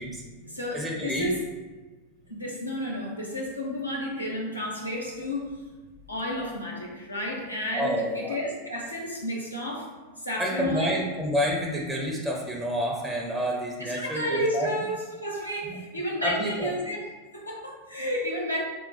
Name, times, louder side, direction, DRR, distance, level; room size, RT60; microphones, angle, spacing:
voice 1, 0.0-0.4 0.7-1.3 7.7-8.3 10.4-14.7 15.6-16.7, equal, 5° right, -2 dB, 0.6 m, -29 dB
voice 2, 0.5-1.4 2.3-5.6 6.1-9.9 10.2-11.0 13.8-17.0 17.3-18.6, equal, 85° left, -3 dB, 0.9 m, -31 dB
3.8 x 2.2 x 4.1 m, 1.3 s
figure-of-eight pair, 90°, 0 cm